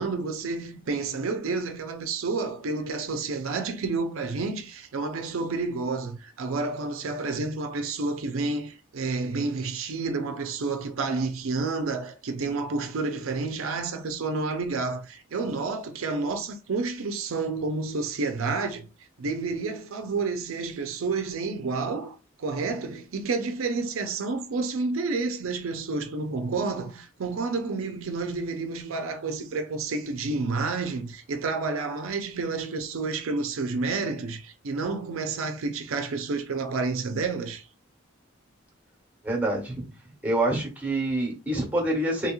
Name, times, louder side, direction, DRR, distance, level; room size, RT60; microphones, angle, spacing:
voice 1, 0.0-18.9 19.2-37.7, right 3 dB, 80° right, 0.5 m, -30 dB
voice 2, 39.2-39.9 40.2-42.3, right 1 dB, 10° right, 1.1 m, -26 dB
2.9 x 2.9 x 2.3 m
head